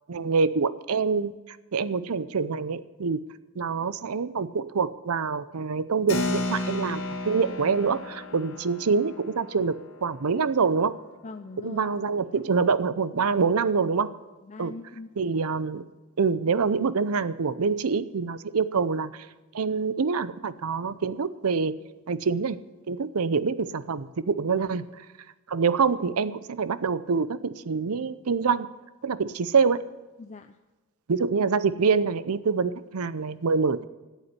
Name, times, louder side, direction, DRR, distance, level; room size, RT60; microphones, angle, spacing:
voice 1, 0.1-1.3 1.7-3.2 3.6-11.0 11.6-14.1 14.6-14.7 15.2-15.8 16.2-19.3 19.5-21.7 22.1-22.6 22.9-25.0 25.5-28.7 29.0-29.8 31.1-33.8, right 5 dB, 85° right, 15 dB, 0.6 m, -25 dB
Keyboard (musical), 6.1-12.1, left 2 dB, 70° left, 1.9 m, -34 dB
voice 2, 11.2-11.9 12.3-12.4 14.4-15.1 24.6-24.7 30.2-30.6, left 3 dB, 30° left, 8 dB, 0.5 m, -42 dB
14.0 x 8.2 x 9.6 m, 1.2 s
head